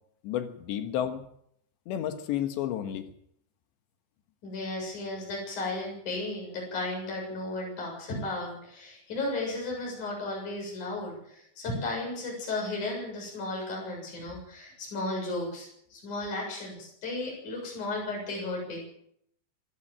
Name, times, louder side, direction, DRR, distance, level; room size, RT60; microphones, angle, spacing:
voice 1, 0.2-1.3 1.9-3.1, left 10 dB, 85° left, 8 dB, 3.7 m, -31 dB
voice 2, 4.4-18.8, left 2 dB, 45° left, -1 dB, 8.5 m, -34 dB
25.5 x 13.5 x 7.7 m, 0.71 s
omnidirectional pair, 5.0 m